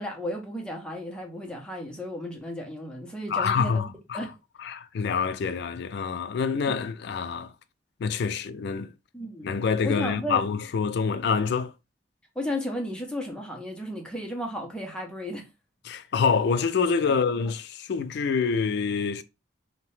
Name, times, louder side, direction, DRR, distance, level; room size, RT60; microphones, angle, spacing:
voice 1, 0.0-4.3 9.1-9.5 9.8-10.4 12.4-15.5 17.4-17.5, left 1 dB, 5° left, 0.6 m, -34 dB
voice 2, 3.3-4.2 4.6-7.5 8.0-8.9 9.4-11.7 15.9-19.2, left 5 dB, 60° left, 0.3 m, -26 dB
2.7 x 2.1 x 3.1 m
head